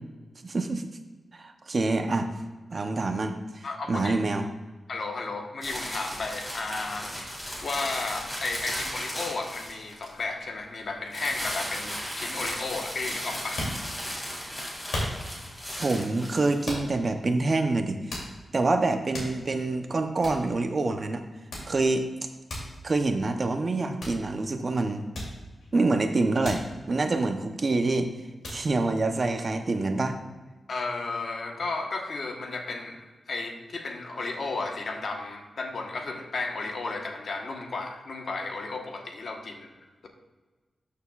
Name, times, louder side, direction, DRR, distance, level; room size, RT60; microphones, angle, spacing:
voice 1, 0.4-0.9 1.3-2.3 2.7-4.5 15.8-18.2 18.5-21.2 21.7-22.1 22.8-25.1 25.7-28.1 28.5-30.2, right 3 dB, 45° right, 6 dB, 0.7 m, -26 dB
voice 2, 3.6-4.1 4.9-7.1 7.6-13.6 30.7-39.7, left 3 dB, 65° left, 3 dB, 1.2 m, -33 dB
sound 1, 5.6-10.2 11.1-16.7, equal, 15° left, 2.3 m, -36 dB
sound 2, 13.6-14.3 14.9-15.5 16.7-17.1 17.6-17.7 18.1-18.6 18.9-19.7 20.0-20.1 20.2-20.5 21.5-21.9 22.5-22.8 24.0-24.3 25.1-25.7 26.4-26.7 27.1-27.9 28.4-28.7, left 1 dB, 85° left, 2.8 m, -35 dB
12.5 x 6.6 x 2.4 m, 1.2 s
wide cardioid pair, 115°, 0 cm